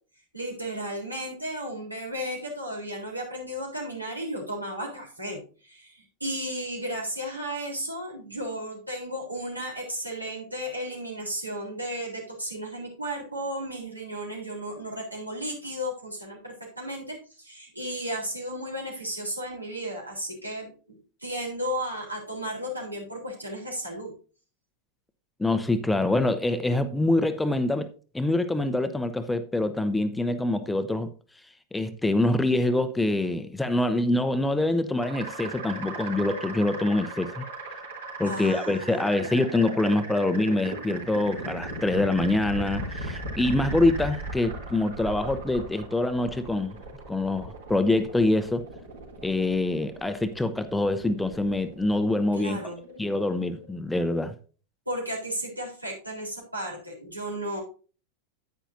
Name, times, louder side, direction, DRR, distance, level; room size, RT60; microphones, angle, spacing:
voice 1, 0.3-20.7 21.2-24.1 38.2-39.0 52.3-52.8 54.9-57.6, equal, 85° right, 3.6 m, -34 dB
voice 2, 25.4-27.9 28.1-31.1 31.7-37.4 38.2-46.8 47.1-48.6 49.2-52.6 53.0-54.3, left 2 dB, 5° left, 0.7 m, -25 dB
sound 1, 35.0-53.7, right 2 dB, 65° right, 3.3 m, -38 dB
10.0 x 9.2 x 2.6 m
figure-of-eight pair, 90°, 0 cm